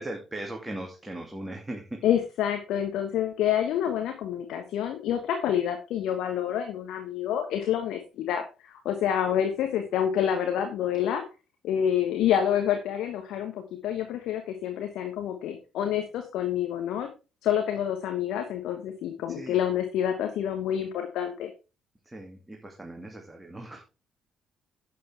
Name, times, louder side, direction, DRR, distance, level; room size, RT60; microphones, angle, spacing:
voice 1, 0.0-2.0 19.3-19.6 22.0-23.8, right 1 dB, 15° right, 1 dB, 2.5 m, -38 dB
voice 2, 2.0-11.2 11.6-17.1 17.4-21.5, left 10 dB, 60° left, 6 dB, 1.4 m, -28 dB
11.0 x 8.6 x 3.5 m, 0.31 s
figure-of-eight pair, 45°, 0 cm